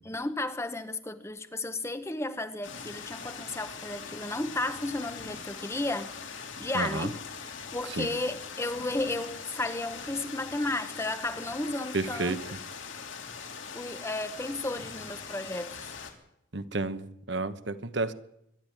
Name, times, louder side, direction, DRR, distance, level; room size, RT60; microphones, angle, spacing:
voice 1, 0.0-6.1 6.6-7.2 7.7-12.4 13.7-15.9, left 2 dB, 15° left, 10 dB, 0.9 m, -33 dB
sound 1, 2.6-16.1, left 5 dB, 65° left, 3.0 m, -42 dB
voice 2, 6.7-7.1 7.9-8.1 11.9-12.4 16.5-18.1, right 3 dB, 60° right, 11 dB, 1.1 m, -31 dB
23.0 x 12.0 x 10.0 m, 0.80 s
head